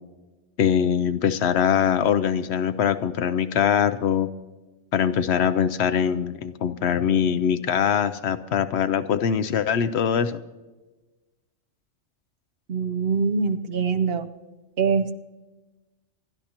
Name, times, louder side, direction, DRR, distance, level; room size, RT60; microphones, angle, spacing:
voice 1, 0.6-4.3 4.9-10.4, left 8 dB, 70° left, 12 dB, 0.8 m, -22 dB
voice 2, 12.7-14.3 14.8-15.2, right 5 dB, 60° right, 10 dB, 0.9 m, -23 dB
27.0 x 12.0 x 2.9 m, 1.2 s
omnidirectional pair, 1.2 m